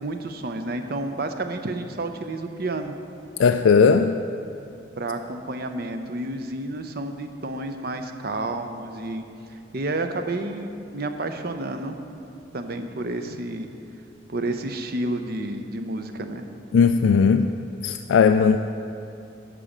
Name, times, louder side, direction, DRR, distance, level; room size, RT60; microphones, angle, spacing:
voice 1, 0.0-2.9 5.0-9.2 9.5-12.0 12.5-13.7 14.3-16.5, right 2 dB, 50° right, 7 dB, 0.6 m, -30 dB
voice 2, 3.4-4.2 16.7-17.5 17.8-18.6, left 6 dB, 75° left, 7 dB, 0.3 m, -17 dB
11.5 x 5.0 x 7.2 m, 2.6 s
head